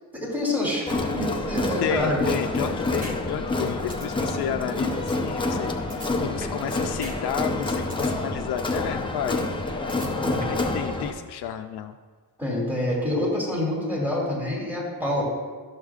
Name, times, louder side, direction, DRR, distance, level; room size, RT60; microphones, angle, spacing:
voice 1, 0.1-2.2 2.6-2.8 10.2-10.5 12.4-15.2, left 1 dB, 5° right, -5 dB, 2.5 m, -27 dB
Crowd, 0.9-11.1, left 2 dB, 15° left, 0.6 m, -28 dB
voice 2, 1.8-9.5 9.9-12.0, left 9 dB, 80° left, 5 dB, 0.5 m, -32 dB
sound 1, 3.0-3.2 3.5-3.6 3.9-4.1 5.9-6.7 7.0-7.2 7.5-8.1 9.9-10.7, equal, 20° right, 1.2 m, -38 dB
12.5 x 6.5 x 2.4 m, 1.5 s
wide cardioid pair, 120°, 38 cm